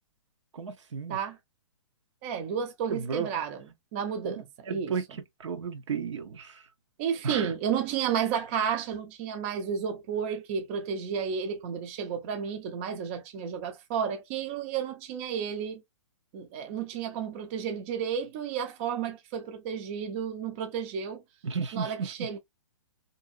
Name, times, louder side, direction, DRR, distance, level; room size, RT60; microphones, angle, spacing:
voice 1, 0.5-1.2 2.9-3.3 4.2-6.6 7.2-7.5 21.4-22.3, right 6 dB, 75° right, 0.7 m, -34 dB
voice 2, 2.2-3.6 3.9-4.9 7.0-15.8 16.3-21.2 21.7-22.4, right 7 dB, 25° right, 0.4 m, -32 dB
2.6 x 2.5 x 2.4 m
hypercardioid pair, 155°, 16 cm